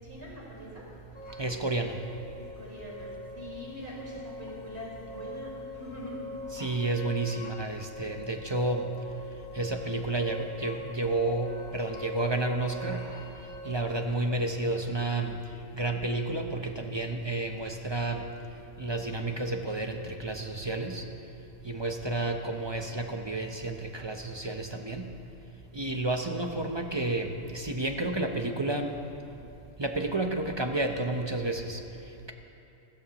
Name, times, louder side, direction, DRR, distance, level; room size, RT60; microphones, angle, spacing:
voice 1, 0.0-0.8 2.6-3.1 3.3-6.2, left 1 dB, 50° right, -6 dB, 4.7 m, -43 dB
sound 1, 1.1-13.8, left 2 dB, 35° left, 2.1 m, -43 dB
voice 2, 1.4-2.0 6.5-8.8 9.5-13.0 13.6-15.3 15.7-18.2 18.8-21.0 21.6-25.1 25.7-28.9 29.8-31.8, right 2 dB, 25° right, 4 dB, 0.6 m, -31 dB
28.5 x 13.0 x 3.0 m, 2.7 s
omnidirectional pair, 1.3 m